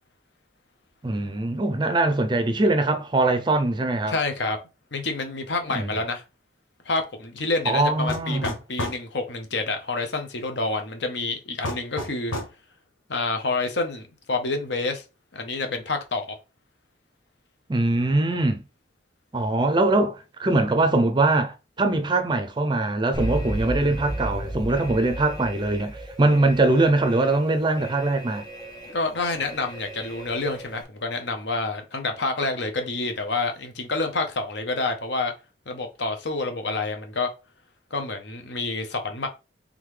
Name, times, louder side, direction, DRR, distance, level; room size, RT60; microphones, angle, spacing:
voice 1, 1.0-4.1 5.7-5.9 7.7-8.5 17.7-18.6 19.3-28.4, right 2 dB, 25° right, 0.5 m, -22 dB
voice 2, 4.1-4.6 4.9-6.2 6.8-12.3 13.1-15.0 15.3-16.4 28.9-35.3 35.7-37.3 37.9-39.3, left 3 dB, 65° left, 0.9 m, -28 dB
sound 1, 8.1-9.0 11.6-12.6, left 1 dB, 90° left, 1.3 m, -31 dB
Alarm, 23.1-30.8, right 1 dB, 20° left, 1.0 m, -35 dB
3.8 x 3.5 x 3.2 m
head